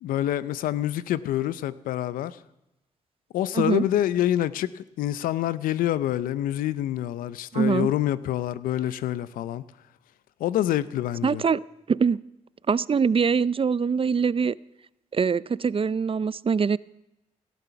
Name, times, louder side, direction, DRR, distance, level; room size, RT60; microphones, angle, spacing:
voice 1, 0.0-2.4 3.3-9.7 10.4-11.4, left 12 dB, 90° left, 0.6 m, -26 dB
voice 2, 3.5-3.8 7.5-7.9 11.2-11.6 11.9-12.2 12.7-14.5 15.1-16.8, right 6 dB, 40° right, 0.5 m, -23 dB
17.5 x 12.5 x 5.8 m
supercardioid pair, 45°, 14 cm